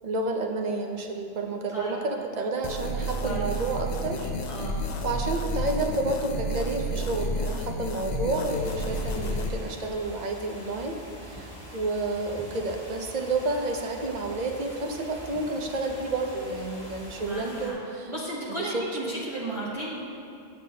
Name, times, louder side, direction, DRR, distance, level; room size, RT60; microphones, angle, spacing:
voice 1, 0.0-4.3 4.8-18.1 18.5-19.3, right 2 dB, 50° right, 3 dB, 0.6 m, -30 dB
voice 2, 1.7-2.0 3.2-3.4 4.5-4.8 17.2-17.8 18.1-20.0, right 1 dB, 30° right, -8 dB, 1.0 m, -34 dB
sound 1, 2.6-9.5, equal, 50° left, 0.5 m, -31 dB
sound 2, 8.5-17.7, equal, 20° left, 1.6 m, -44 dB
8.9 x 8.0 x 2.7 m, 2.6 s
omnidirectional pair, 1.2 m